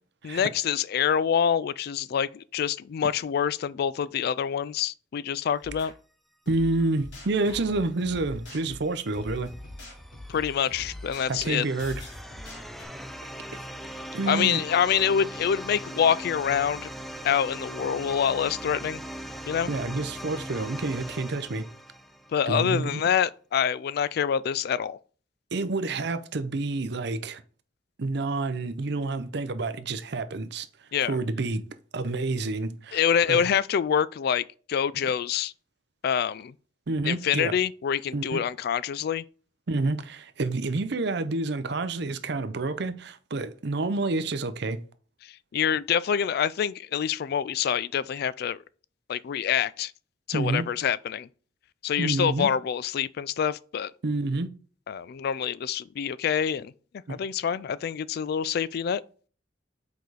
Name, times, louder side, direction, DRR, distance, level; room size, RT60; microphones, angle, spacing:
voice 1, 0.2-5.9 10.3-11.6 14.3-16.9 17.2-19.0 19.5-19.7 22.3-25.0 30.9-31.2 32.9-35.5 36.0-36.5 37.0-39.2 45.2-48.6 49.1-49.9 50.3-51.3 51.8-53.9 54.9-56.7 57.1-59.0, left 8 dB, 55° left, 0.3 m, -26 dB
sound 1, 5.6-6.0 6.5-12.8, left 1 dB, 80° left, 2.7 m, -43 dB
voice 2, 6.5-9.5 11.3-12.0 14.1-14.6 19.7-21.6 22.5-23.1 25.5-27.4 28.0-30.7 31.1-31.6 31.9-33.0 33.3-33.4 35.0-35.1 36.9-37.5 38.1-38.4 39.7-44.8 50.3-50.6 52.0-52.5 54.0-54.5 57.1-57.2, right 3 dB, 60° right, 0.6 m, -28 dB
sound 2, 8.7-22.5, equal, ahead, 0.5 m, -40 dB
6.7 x 4.8 x 4.0 m
head